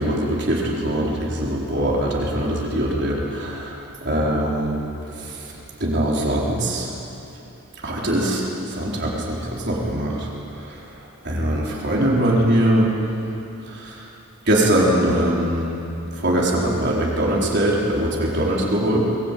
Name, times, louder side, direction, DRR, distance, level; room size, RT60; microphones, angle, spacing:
voice 1, 0.0-4.8 5.2-5.5 5.8-6.9 7.8-10.8 11.2-12.9 13.7-14.0 14.5-15.7 16.2-19.0, right 1 dB, 50° right, -4 dB, 4.2 m, -22 dB
23.0 x 18.5 x 9.2 m, 2.8 s
head